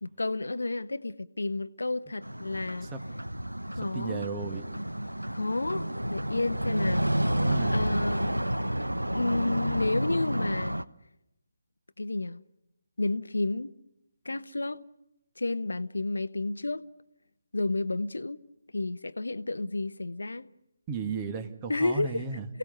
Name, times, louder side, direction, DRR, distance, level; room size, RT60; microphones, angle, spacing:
voice 1, 0.0-2.9 3.8-4.3 5.3-7.1 7.7-8.4 9.1-10.8 12.0-12.4 13.0-13.7 14.2-14.8 15.4-16.8 17.5-18.4 18.7-20.5 21.7-22.1, left 2 dB, 70° left, 1.0 m, -31 dB
sound 1, 2.2-10.8, right 1 dB, 85° right, 0.9 m, -30 dB
voice 2, 3.7-4.6 7.2-7.8 20.9-22.5, right 5 dB, 20° right, 1.8 m, -35 dB
28.5 x 17.5 x 6.8 m
figure-of-eight pair, 150°, 0 cm